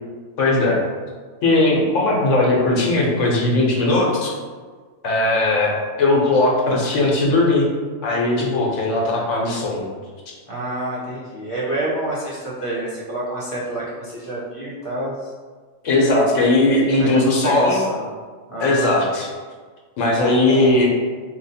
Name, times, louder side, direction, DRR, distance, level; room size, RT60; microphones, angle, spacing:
voice 1, 0.4-0.8 1.4-4.3 5.0-7.7 8.0-9.8 15.8-17.8 18.6-19.3 20.0-20.9, left 2 dB, 75° left, -2 dB, 1.1 m, -18 dB
voice 2, 10.5-15.3 17.0-18.0 18.5-18.9 20.5-20.8, right 1 dB, 30° left, -7 dB, 0.9 m, -28 dB
2.9 x 2.4 x 4.1 m, 1.5 s
omnidirectional pair, 1.3 m